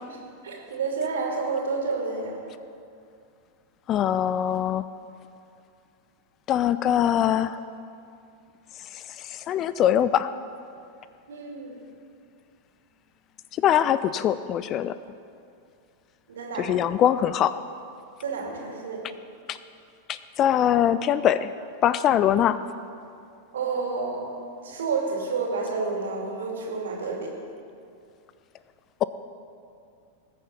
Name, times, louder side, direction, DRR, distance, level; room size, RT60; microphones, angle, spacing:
voice 1, 0.4-2.4 11.3-11.7 16.3-16.7 18.2-19.0 23.5-24.2 24.6-27.3, right 4 dB, 65° right, -1 dB, 2.6 m, -29 dB
voice 2, 3.9-4.9 6.5-7.6 8.9-10.3 13.5-14.9 16.6-17.5 19.5-19.6 20.1-21.5 21.8-22.6, left 10 dB, 30° left, 14 dB, 0.4 m, -22 dB
20.0 x 6.8 x 5.4 m, 2.5 s
figure-of-eight pair, 90°, 0 cm